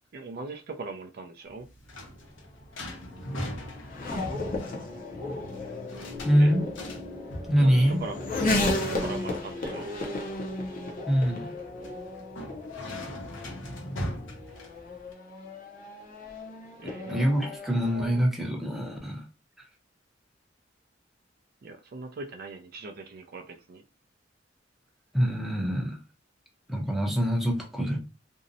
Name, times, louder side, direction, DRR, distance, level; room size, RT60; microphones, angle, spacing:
voice 1, 0.1-1.7 6.3-6.5 7.6-8.1 8.5-9.9 16.8-17.2 21.6-23.8, right 3 dB, 55° right, 0.4 m, -40 dB
sound 1, 1.5-15.1, equal, 80° left, 0.7 m, -40 dB
Race car auto racing / Accelerating revving vroom, 2.0-18.3, left 2 dB, 45° left, 0.5 m, -34 dB
voice 2, 6.2-6.7 7.5-8.0 11.1-11.5 17.1-19.2 25.1-26.0 26.7-28.0, equal, ahead, 0.6 m, -24 dB
2.6 x 2.0 x 2.5 m
head